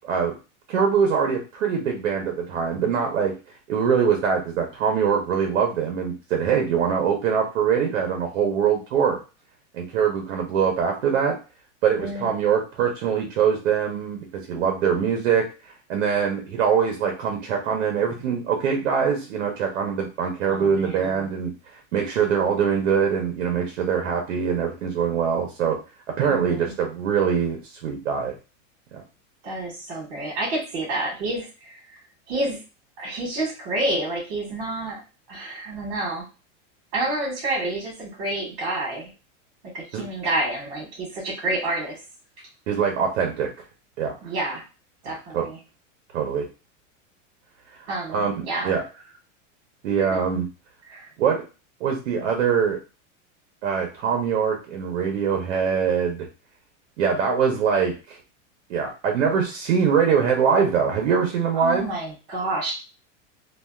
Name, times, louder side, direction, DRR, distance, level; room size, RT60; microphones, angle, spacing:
voice 1, 0.0-0.3 0.7-3.3 3.7-9.2 9.7-11.3 11.8-15.4 15.9-21.5 21.9-25.8 26.2-28.3 28.9-29.0 39.9-40.0 42.7-43.5 44.0-44.1 45.1-45.5 46.1-46.4 48.1-48.8 49.8-50.5 51.2-51.4 51.8-52.8 53.6-56.3 57.0-58.2 58.7-61.8, right 7 dB, 70° right, 3 dB, 0.8 m, -23 dB
voice 2, 12.0-12.4 20.5-21.3 26.3-26.7 29.4-31.8 32.3-32.6 33.0-35.0 35.3-36.2 36.9-39.1 39.7-42.0 44.2-44.6 45.0-45.6 47.9-48.8 50.0-50.1 50.9-51.1 61.5-62.7, right 2 dB, 35° right, -2 dB, 1.6 m, -29 dB
3.3 x 2.4 x 2.3 m, 0.32 s
supercardioid pair, 175°, 37 cm